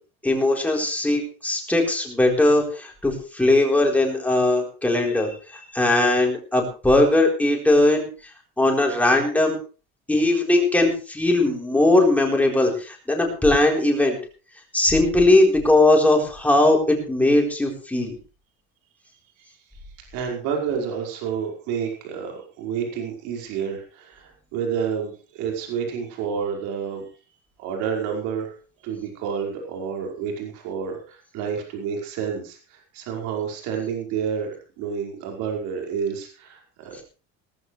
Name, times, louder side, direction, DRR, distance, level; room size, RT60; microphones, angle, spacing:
voice 1, 0.2-8.1 8.6-9.6 10.1-14.2 14.7-18.1, left 2 dB, 5° left, 0 dB, 4.2 m, -19 dB
voice 2, 20.1-27.0 27.6-28.5 28.8-34.5 34.8-37.0, right 7 dB, 85° right, 1 dB, 5.1 m, -29 dB
18.0 x 14.5 x 3.3 m, 0.36 s
cardioid pair, 160°, 29 cm